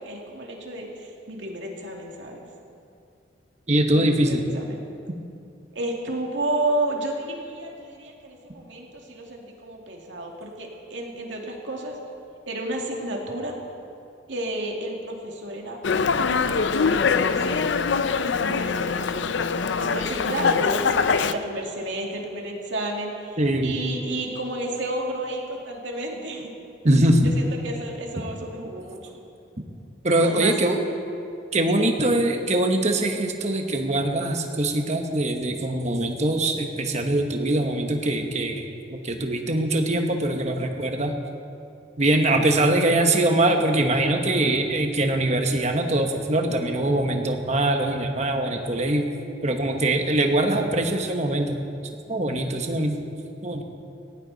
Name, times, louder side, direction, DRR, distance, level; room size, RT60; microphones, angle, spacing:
voice 1, 0.0-2.4 3.9-4.8 5.7-12.0 12.5-13.6 14.3-17.6 18.4-19.3 19.8-26.5 27.2-29.2 30.2-30.5 31.7-31.9, right 1 dB, 65° right, 0 dB, 2.4 m, -32 dB
voice 2, 3.7-4.4 23.4-23.8 26.8-27.3 30.0-30.8 31.5-38.6 38.9-41.1 42.0-49.1 49.4-51.6 52.1-53.0 53.4-53.6, right 1 dB, 35° right, 4 dB, 1.3 m, -22 dB
Dog, 15.8-21.3, left 5 dB, 65° left, 0.5 m, -23 dB
18.0 x 17.5 x 4.1 m, 2.6 s
head